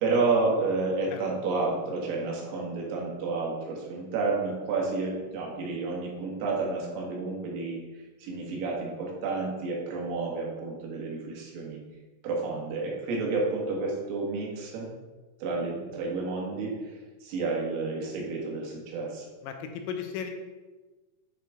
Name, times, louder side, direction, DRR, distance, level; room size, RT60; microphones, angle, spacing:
voice 1, 0.0-7.8 8.2-11.8 12.2-14.9 15.4-16.7 17.2-19.3, right 3 dB, 80° right, -2 dB, 4.5 m, -30 dB
voice 2, 19.4-20.3, left 7 dB, 80° left, 5 dB, 3.4 m, -35 dB
9.8 x 6.3 x 3.7 m, 1.2 s
omnidirectional pair, 5.9 m